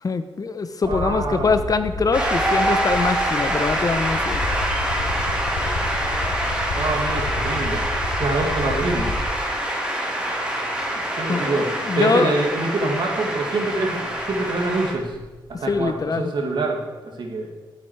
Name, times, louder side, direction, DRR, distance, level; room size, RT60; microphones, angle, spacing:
voice 1, 0.0-4.4 11.3-12.3 15.7-16.3, left 4 dB, 45° left, 10 dB, 1.0 m, -23 dB
sound 1, 0.8-9.6 10.7-10.8 13.0-13.1 13.3-15.9, left 2 dB, 75° left, 2.0 m, -31 dB
voice 2, 0.9-1.5 6.7-7.8 8.2-9.1 10.8-15.2 15.6-16.8 17.2-17.5, right 2 dB, 70° right, 1 dB, 2.2 m, -25 dB
Shout / Cheering / Applause, 2.1-14.9, right 1 dB, 15° right, 3.8 m, -25 dB
12.5 x 9.2 x 4.8 m, 1.2 s
cardioid pair, 75°, 8 cm